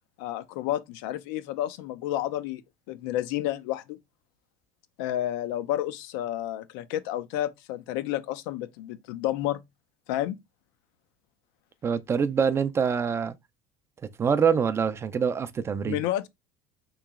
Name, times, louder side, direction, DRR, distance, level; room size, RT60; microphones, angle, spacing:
voice 1, 0.2-2.6 2.9-4.0 5.0-9.6 10.1-10.3 15.8-16.3, left 13 dB, 75° left, 0.5 m, -30 dB
voice 2, 11.8-13.3 14.2-16.0, right 6 dB, 25° right, 0.4 m, -25 dB
3.1 x 2.9 x 3.6 m
supercardioid pair, 115°, 11 cm